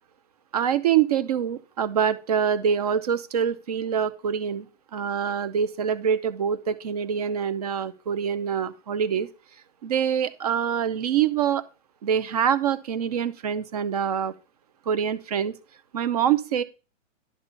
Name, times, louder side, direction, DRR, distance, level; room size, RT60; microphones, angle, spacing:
voice 1, 0.5-4.7 4.9-9.3 9.8-11.6 12.0-14.3 14.9-15.6 15.9-16.6, right 8 dB, 30° right, 15 dB, 0.7 m, -25 dB
11.5 x 4.2 x 6.9 m, 0.32 s
hypercardioid pair, 175°, 38 cm